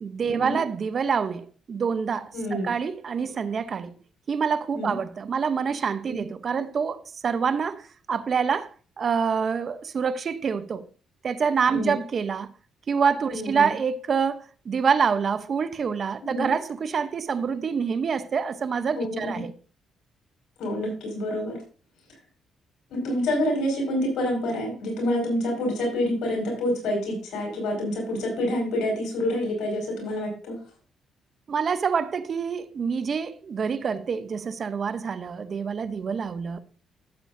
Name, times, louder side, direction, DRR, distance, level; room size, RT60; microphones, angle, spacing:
voice 1, 0.0-3.9 4.3-8.7 9.0-10.9 11.2-12.5 12.9-19.5 31.5-36.6, right 6 dB, 50° right, 0.8 m, -26 dB
voice 2, 2.3-2.7 4.8-5.0 6.1-6.2 11.7-12.0 13.3-13.7 16.3-16.5 18.9-19.4 20.6-21.6 22.9-30.5, left 1 dB, 75° left, 5.4 m, -27 dB
14.0 x 7.9 x 2.7 m
cardioid pair, 80°, 0 cm